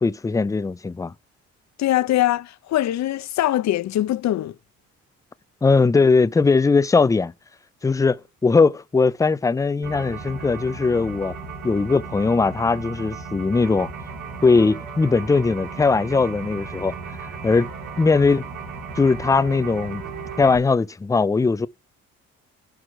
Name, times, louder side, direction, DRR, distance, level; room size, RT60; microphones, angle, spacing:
voice 1, 0.0-1.1 5.6-7.3 7.8-11.3 11.6-13.9 14.4-16.9 17.4-17.7 18.0-18.5 19.0-20.0 20.4-21.7, left 4 dB, 10° left, 0.4 m, -19 dB
voice 2, 1.8-4.5, left 13 dB, 65° left, 0.6 m, -22 dB
sound 1, 9.8-20.6, right 5 dB, 85° right, 2.3 m, -35 dB
10.0 x 4.8 x 4.6 m
cardioid pair, 90°, 30 cm